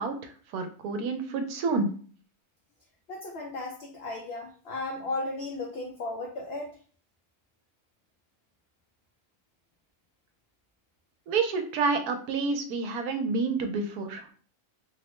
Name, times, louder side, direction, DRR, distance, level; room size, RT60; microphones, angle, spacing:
voice 1, 0.0-1.9 11.3-14.3, right 4 dB, 80° right, 6 dB, 1.1 m, -29 dB
voice 2, 3.1-6.8, left 2 dB, 70° left, 0 dB, 0.6 m, -35 dB
3.1 x 2.0 x 3.0 m, 0.43 s
omnidirectional pair, 1.6 m